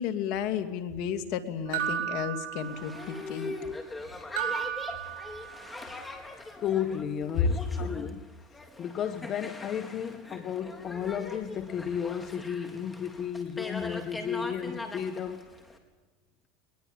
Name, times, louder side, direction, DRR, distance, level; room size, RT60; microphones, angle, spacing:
voice 1, 0.0-3.5 7.4-7.5, left 7 dB, 60° left, 7 dB, 2.7 m, -31 dB
sound 1, 1.7-3.2 4.4-5.8, right 10 dB, 75° right, 6.5 m, -34 dB
Boat Water vehicle, 2.6-15.8, left 2 dB, 10° left, 4.3 m, -41 dB
voice 2, 6.6-8.2 8.5-15.5, left 8 dB, 40° left, 8 dB, 1.7 m, -33 dB
23.0 x 21.5 x 8.9 m, 1.3 s
supercardioid pair, 115°, 0 cm